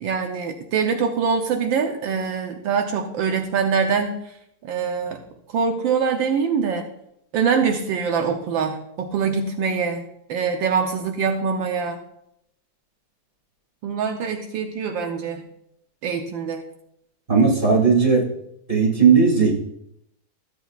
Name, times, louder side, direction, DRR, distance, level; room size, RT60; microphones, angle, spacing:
voice 1, 0.0-4.2 4.6-5.2 5.5-6.8 7.3-12.0 13.8-15.4 16.0-16.6, right 6 dB, 80° right, 4 dB, 1.5 m, -24 dB
voice 2, 17.3-18.3 18.7-19.5, right 5 dB, 25° right, -3 dB, 2.7 m, -16 dB
14.0 x 8.1 x 2.4 m, 0.77 s
omnidirectional pair, 2.1 m